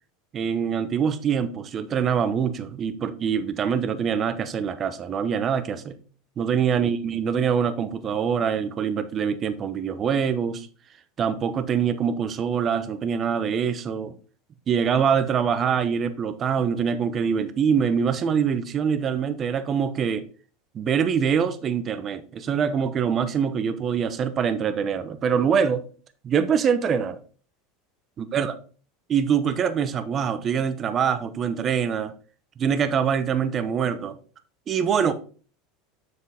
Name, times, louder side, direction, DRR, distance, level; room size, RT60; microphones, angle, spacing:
voice 1, 0.3-6.0 6.4-10.7 11.2-14.1 14.7-20.2 20.7-25.8 26.2-27.2 28.2-28.6 29.1-32.1 32.6-34.2 34.7-35.1, right 7 dB, 35° right, 0.9 m, -24 dB
7.2 x 6.4 x 3.5 m
supercardioid pair, 125°, 0 cm